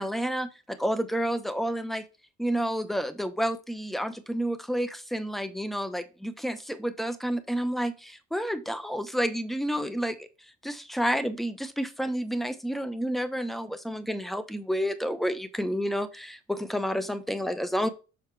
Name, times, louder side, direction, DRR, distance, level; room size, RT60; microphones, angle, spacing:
voice 1, 0.0-2.0 2.4-10.3 10.6-17.9, equal, ahead, 11 dB, 0.8 m, -30 dB
6.8 x 4.6 x 3.2 m, 0.31 s
cardioid pair, 90°, 30 cm